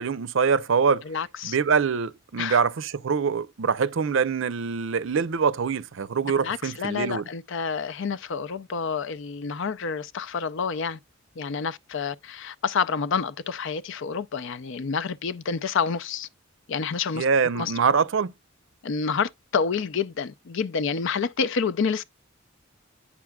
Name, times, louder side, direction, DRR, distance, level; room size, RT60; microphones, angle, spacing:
voice 1, 0.0-1.0 1.4-7.2 17.1-18.3, right 5 dB, 70° right, 0.5 m, -24 dB
voice 2, 1.0-1.6 2.4-2.6 6.4-11.0 11.4-16.3 16.7-17.3 17.5-17.7 18.8-22.0, left 5 dB, 65° left, 0.5 m, -28 dB
8.4 x 6.0 x 2.2 m
head